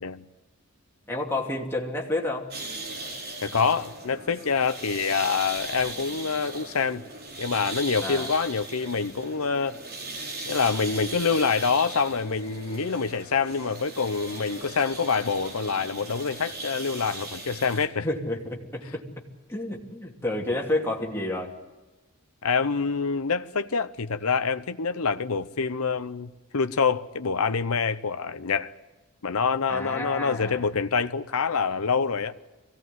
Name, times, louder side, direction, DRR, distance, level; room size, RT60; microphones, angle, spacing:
voice 1, 1.1-2.5 8.0-8.3 18.0-19.0 19.5-21.5 29.7-30.7, left 1 dB, 10° left, 2.9 m, -30 dB
sound 1, 2.5-17.9, right 2 dB, 45° right, 4.1 m, -38 dB
voice 2, 3.4-7.0 7.4-9.8 10.5-18.1 22.4-28.7 29.2-32.3, left 5 dB, 75° left, 0.8 m, -26 dB
23.0 x 17.0 x 9.4 m
head